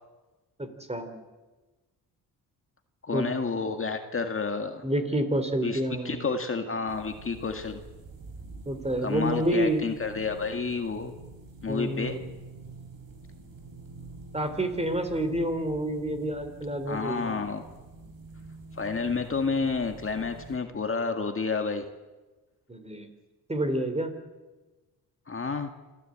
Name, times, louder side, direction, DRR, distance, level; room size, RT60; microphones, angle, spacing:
voice 1, 0.6-1.2 3.1-3.3 4.8-6.3 8.6-9.8 11.7-12.3 14.3-17.4 22.7-23.1 23.5-24.1, right 1 dB, 15° right, 8 dB, 3.5 m, -28 dB
voice 2, 3.0-4.8 5.6-7.8 9.0-11.1 11.6-12.2 16.9-17.6 18.7-21.8 25.3-25.7, left 4 dB, 35° left, 5 dB, 1.9 m, -30 dB
sound 1, 6.9-20.6, right 4 dB, 60° right, 5.0 m, -47 dB
27.0 x 14.5 x 8.7 m, 1.2 s
cardioid pair, 80°, 39 cm